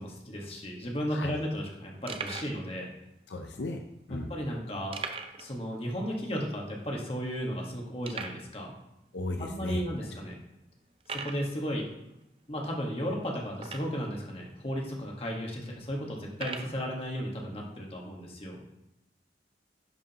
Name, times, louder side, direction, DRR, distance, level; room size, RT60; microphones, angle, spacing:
voice 1, 0.0-2.9 4.1-5.0 5.4-8.8 9.4-10.3 11.1-11.9 12.5-18.6, equal, 35° left, -1 dB, 1.5 m, -34 dB
sound 1, 0.6-0.7 0.9-1.0 1.6-1.7 2.1-2.6 3.4-3.5 4.9-5.5 5.8-5.9 6.3-6.4 7.0-7.1 8.0-8.5 9.3-9.4 10.0-10.1 11.0-11.5 13.6-14.1 14.9-15.0 16.3-16.8, right 5 dB, 30° right, 0.5 m, -39 dB
voice 2, 3.3-4.3 9.1-9.8, left 2 dB, 75° left, 4 dB, 0.6 m, -36 dB
11.0 x 4.9 x 2.9 m, 0.90 s
head